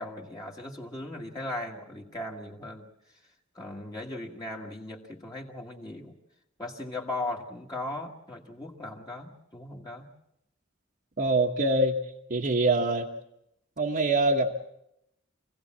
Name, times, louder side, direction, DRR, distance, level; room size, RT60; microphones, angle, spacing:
voice 1, 0.0-2.9 3.5-6.2 6.6-10.1, left 1 dB, 20° left, -1 dB, 1.6 m, -38 dB
voice 2, 11.2-12.0 12.3-13.1 13.8-14.5, right 2 dB, 45° right, 0 dB, 1.1 m, -24 dB
26.0 x 16.5 x 7.4 m, 0.83 s
head